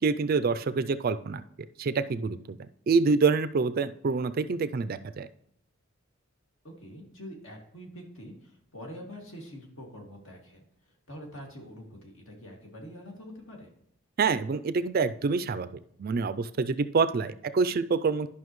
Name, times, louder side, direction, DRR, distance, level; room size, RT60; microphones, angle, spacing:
voice 1, 0.0-1.4 1.8-2.6 2.9-5.3 14.2-15.7 16.0-18.3, right 4 dB, 45° right, 13 dB, 0.4 m, -26 dB
voice 2, 6.6-13.7, equal, 70° left, 1 dB, 2.2 m, -45 dB
11.5 x 5.6 x 3.1 m, 0.71 s
head